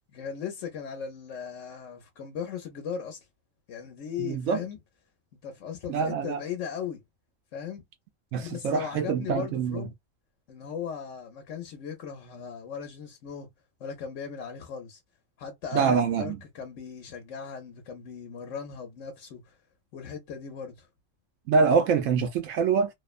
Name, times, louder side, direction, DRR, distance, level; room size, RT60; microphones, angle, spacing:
voice 1, 0.1-3.2 3.7-4.8 5.4-7.0 7.5-7.8 8.4-9.9 10.5-13.5 13.8-15.0 15.4-19.6 19.9-20.9, left 7 dB, 80° left, 1.1 m, -38 dB
voice 2, 4.2-4.6 5.9-6.4 8.3-9.9 15.7-16.4 21.5-22.9, right 5 dB, 80° right, 0.9 m, -25 dB
2.7 x 2.1 x 2.4 m
omnidirectional pair, 1.3 m